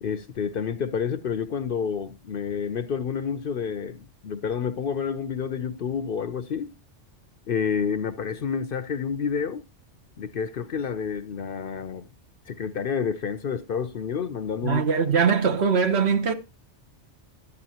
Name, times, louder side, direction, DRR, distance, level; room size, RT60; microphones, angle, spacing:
voice 1, 0.0-6.7 7.5-9.6 10.2-12.1 12.5-14.8, left 6 dB, 55° left, 0.7 m, -29 dB
voice 2, 14.6-16.3, right 6 dB, 60° right, 1.2 m, -21 dB
12.0 x 8.3 x 2.8 m
omnidirectional pair, 1.2 m